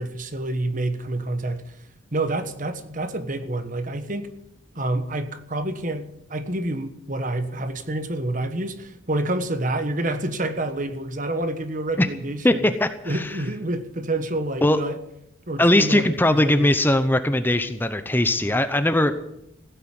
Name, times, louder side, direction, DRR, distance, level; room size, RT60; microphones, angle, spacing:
voice 1, 0.0-1.8 2.1-4.3 4.7-12.7 13.0-15.0 15.5-16.7, right 1 dB, 40° right, 1.3 m, -28 dB
voice 2, 12.4-13.3 14.6-14.8 15.6-19.1, left 1 dB, 10° left, 0.8 m, -20 dB
16.0 x 9.4 x 9.6 m
head